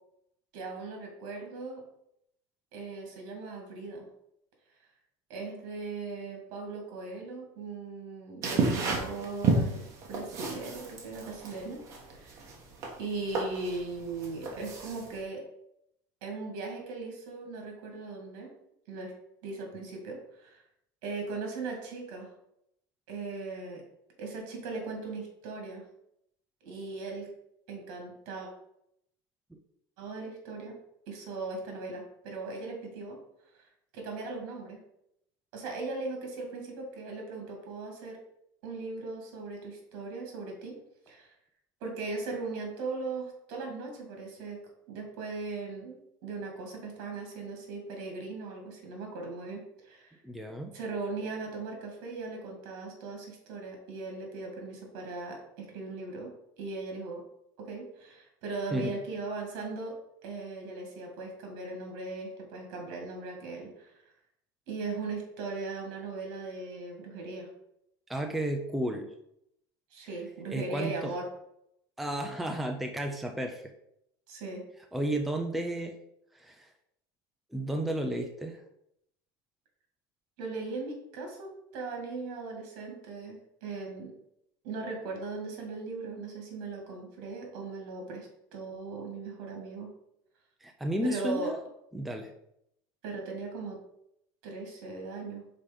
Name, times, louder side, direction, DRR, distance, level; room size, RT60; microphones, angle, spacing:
voice 1, 0.5-1.8 2.7-4.1 5.3-9.8 10.1-11.8 12.1-12.4 13.0-15.4 16.2-18.5 18.9-19.1 19.4-20.6 21.0-22.3 23.1-23.8 24.2-25.8 26.6-27.3 27.7-28.5 30.0-30.8 31.1-33.2 33.9-34.8 35.5-38.2 38.6-40.8 41.1-41.3 41.8-44.6 44.9-50.2 50.7-57.2 57.6-60.0 60.2-63.9 64.7-67.5 69.9-71.2 74.3-74.6 80.4-84.1 84.6-89.9 91.0-91.5 93.0-93.8 94.4-95.4, right 3 dB, 60° right, 2 dB, 2.3 m, -38 dB
sound 1, 8.4-15.2, right 3 dB, 35° right, 1.4 m, -32 dB
voice 2, 50.2-50.7 58.7-58.9 68.1-69.1 70.5-71.1 72.0-73.6 74.9-75.9 76.3-76.7 77.5-78.6 90.6-91.6 91.9-92.3, right 1 dB, ahead, 3 dB, 0.4 m, -32 dB
5.1 x 4.3 x 5.2 m, 0.78 s
cardioid pair, 165°, 9 cm